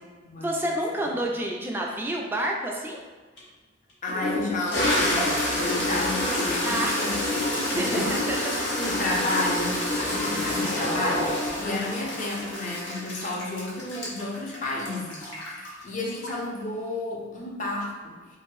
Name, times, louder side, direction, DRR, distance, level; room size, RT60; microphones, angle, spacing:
voice 1, 0.4-3.0 6.6-7.1 7.6-8.4 10.0-10.4, right 1 dB, 10° right, -1 dB, 0.3 m, -29 dB
Toilet flush, 3.4-3.5 4.1-16.6, left 1 dB, 65° left, 0.8 m, -28 dB
voice 2, 4.0-7.2 7.7-8.2 8.7-18.2, left 2 dB, 40° left, -2 dB, 0.5 m, -31 dB
2.6 x 2.6 x 3.1 m, 1.3 s
head